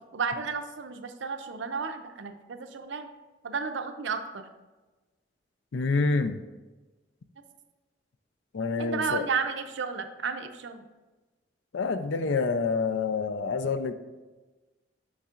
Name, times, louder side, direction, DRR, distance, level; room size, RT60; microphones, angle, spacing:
voice 1, 0.1-3.1 3.4-4.5 8.8-10.8, right 5 dB, 85° right, 8 dB, 0.6 m, -32 dB
voice 2, 5.7-6.4 8.5-9.2 11.7-13.9, left 4 dB, 90° left, 11 dB, 0.4 m, -27 dB
7.0 x 6.4 x 2.5 m, 1.2 s
head